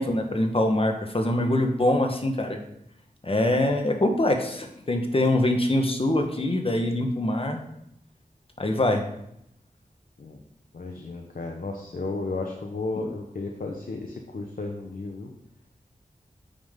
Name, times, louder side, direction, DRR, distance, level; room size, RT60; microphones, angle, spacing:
voice 1, 0.0-2.6 3.2-7.6 8.6-9.0, left 1 dB, 40° left, 4 dB, 1.3 m, -24 dB
voice 2, 10.7-15.3, left 3 dB, 70° left, 2 dB, 0.9 m, -33 dB
8.7 x 5.7 x 3.7 m, 0.79 s
cardioid pair, 45°, 15 cm